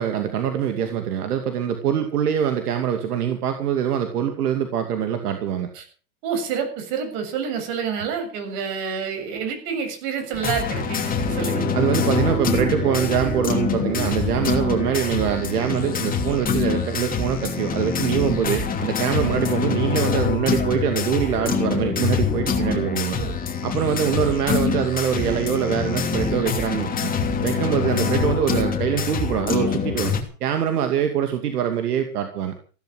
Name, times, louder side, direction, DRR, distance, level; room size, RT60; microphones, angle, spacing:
voice 1, 0.0-5.7 11.7-23.2 23.6-27.1 27.4-30.2 30.4-32.6, right 9 dB, 80° right, 6 dB, 2.5 m, -24 dB
voice 2, 6.2-11.7 23.1-23.3 24.0-24.1 27.9-28.2, right 6 dB, 50° right, 7 dB, 7.4 m, -28 dB
sound 1, 10.3-30.2, left 6 dB, 20° left, 2.9 m, -25 dB
sound 2, 11.2-14.8, right 3 dB, 10° right, 1.3 m, -33 dB
16.0 x 13.0 x 6.3 m, 0.40 s
hypercardioid pair, 125°, 46 cm